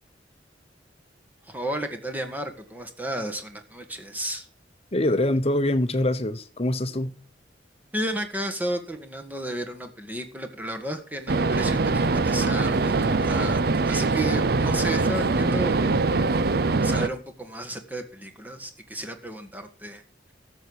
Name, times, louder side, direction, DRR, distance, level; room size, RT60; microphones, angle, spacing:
voice 1, 1.5-4.5 7.9-13.6 13.9-15.8 16.8-20.0, right 1 dB, 10° right, 1.7 m, -33 dB
voice 2, 4.9-7.2, left 1 dB, 35° left, 1.0 m, -24 dB
sound 1, 11.3-17.1, right 3 dB, 55° right, 0.6 m, -23 dB
13.0 x 7.2 x 6.2 m
head